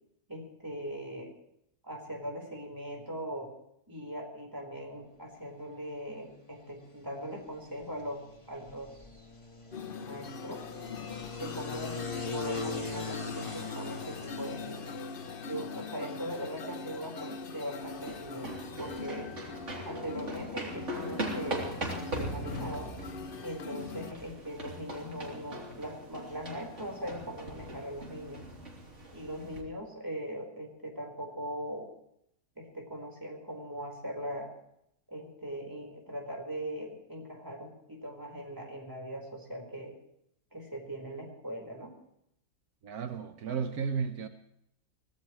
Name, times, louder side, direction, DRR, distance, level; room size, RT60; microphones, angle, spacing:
voice 1, 0.3-1.3 1.8-3.5 3.9-9.3 10.0-10.7 11.3-12.0 12.3-15.0 15.4-18.5 18.8-19.3 19.8-22.9 23.4-28.4 29.1-31.9 32.6-34.5 35.1-39.9 40.5-42.0, equal, 15° right, 0 dB, 4.5 m, -40 dB
sound 1, 5.5-23.5, left 3 dB, 20° left, 1.8 m, -44 dB
sound 2, 9.7-24.1, left 5 dB, 45° left, 0.9 m, -42 dB
sound 3, 17.8-29.6, right 1 dB, 50° right, 3.8 m, -40 dB
voice 2, 42.8-44.3, right 6 dB, 80° right, 7 dB, 1.6 m, -33 dB
24.0 x 17.5 x 3.2 m, 0.74 s
omnidirectional pair, 1.6 m